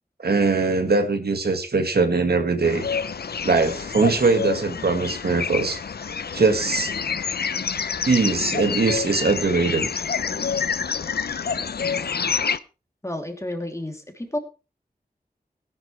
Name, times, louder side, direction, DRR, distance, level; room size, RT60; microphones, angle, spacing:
voice 1, 0.2-2.8 3.4-5.8 6.3-6.9 8.1-9.9, right 4 dB, 80° right, 6 dB, 1.8 m, -21 dB
sound 1, 2.6-12.6, left 6 dB, 90° left, 0.6 m, -28 dB
voice 2, 13.0-14.4, left 1 dB, 20° left, 4 dB, 3.0 m, -31 dB
17.5 x 10.5 x 3.3 m, 0.31 s
wide cardioid pair, 60°, 16 cm